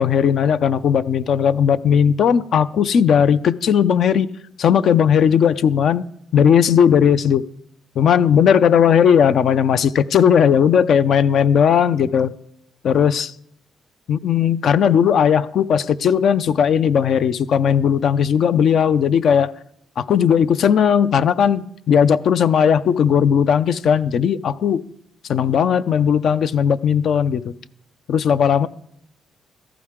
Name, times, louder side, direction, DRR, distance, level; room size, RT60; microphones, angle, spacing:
voice 1, 0.0-4.3 4.6-6.0 6.3-7.5 8.0-12.3 12.8-13.3 14.1-19.5 20.0-24.8 25.3-27.5 28.1-28.7, left 8 dB, 65° left, 0.5 m, -17 dB
17.0 x 13.5 x 3.7 m
cardioid pair, 90°, 0 cm